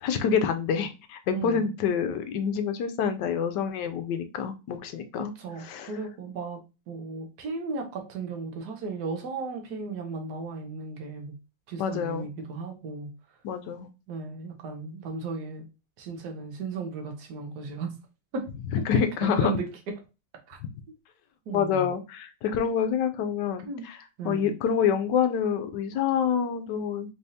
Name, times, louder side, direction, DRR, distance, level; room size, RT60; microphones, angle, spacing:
voice 1, 0.0-6.0 11.8-12.3 13.4-13.9 18.9-19.5 21.5-24.0 24.2-27.1, left 7 dB, 75° left, 9 dB, 1.1 m, -27 dB
voice 2, 1.3-1.7 5.2-6.6 6.9-11.3 11.7-13.1 14.1-15.6 16.0-17.9 18.3-18.5 18.9-19.6 20.5-20.6 21.5-21.9 23.6-23.9 24.2-24.6, right 4 dB, 60° right, 3 dB, 1.4 m, -35 dB
4.0 x 3.4 x 2.7 m, 0.29 s
omnidirectional pair, 2.0 m